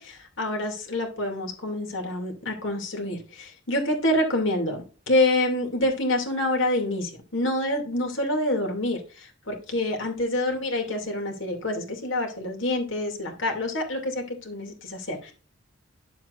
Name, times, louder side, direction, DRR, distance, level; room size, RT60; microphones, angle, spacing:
voice 1, 0.0-15.3, left 1 dB, 70° left, 2 dB, 2.6 m, -27 dB
10.5 x 7.6 x 2.5 m, 0.35 s
head